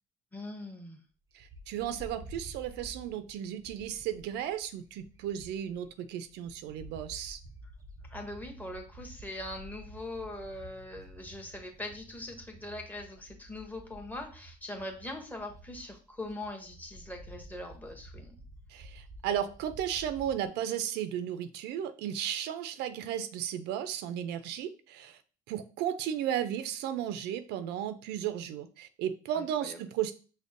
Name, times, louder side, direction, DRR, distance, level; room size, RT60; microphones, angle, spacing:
voice 1, 0.3-1.0 8.1-18.4 29.3-29.8, left 1 dB, 10° left, 3 dB, 0.7 m, -42 dB
voice 2, 1.3-7.4 18.7-25.2 25.5-30.1, right 10 dB, 85° right, 11 dB, 0.4 m, -34 dB
Bird, 1.4-5.9 6.3-20.5, right 1 dB, 20° right, 0.4 m, -51 dB
5.2 x 2.1 x 2.5 m, 0.37 s
cardioid pair, 110°, 17 cm